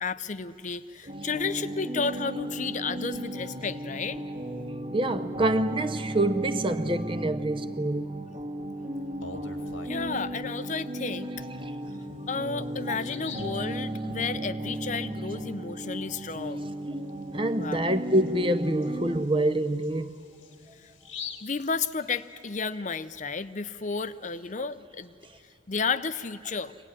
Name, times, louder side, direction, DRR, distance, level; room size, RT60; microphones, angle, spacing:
voice 1, 0.0-4.2 9.8-11.3 12.3-16.6 17.6-17.9 20.8-20.9 21.4-25.1 25.7-26.8, left 5 dB, 40° left, 0.6 m, -32 dB
sound 1, 1.1-19.2, right 1 dB, 40° right, 1.9 m, -35 dB
voice 2, 4.9-8.2 17.3-20.1, right 1 dB, 25° right, 0.7 m, -26 dB
Bird vocalization bird call bird song, 9.0-10.5 11.9-12.0 12.5-12.6 12.9-13.6 17.1-17.2 17.6-17.7 18.3-22.5, left 6 dB, 80° left, 1.8 m, -44 dB
24.5 x 18.0 x 9.9 m
head